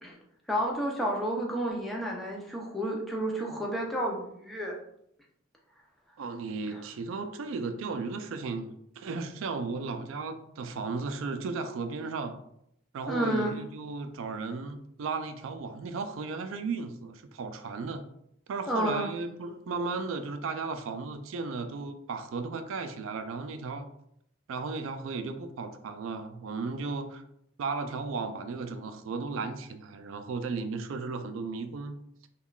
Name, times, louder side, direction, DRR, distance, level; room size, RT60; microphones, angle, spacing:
voice 1, 0.5-4.8 13.1-13.6 18.7-19.1, right 1 dB, ahead, -3 dB, 0.5 m, -30 dB
voice 2, 6.2-12.4 12.9-18.0 18.5-23.9 24.5-27.2 27.6-32.0, right 4 dB, 75° right, 8 dB, 0.4 m, -35 dB
3.5 x 2.3 x 2.3 m, 0.74 s
head